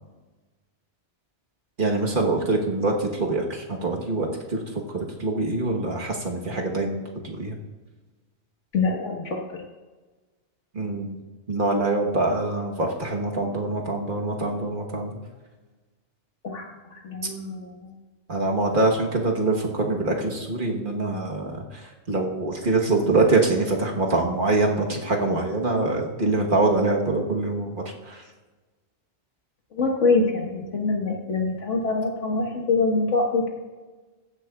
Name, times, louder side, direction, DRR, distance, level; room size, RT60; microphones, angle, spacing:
voice 1, 1.8-4.6 4.9-7.6 10.7-11.2 11.5-15.2 18.3-21.8 22.1-28.2, right 2 dB, 45° right, 0 dB, 1.3 m, -24 dB
voice 2, 8.7-9.6 16.4-16.7 16.9-17.9 29.7-33.5, left 3 dB, 90° left, 1 dB, 1.8 m, -24 dB
15.0 x 10.5 x 2.3 m, 1.3 s
omnidirectional pair, 1.2 m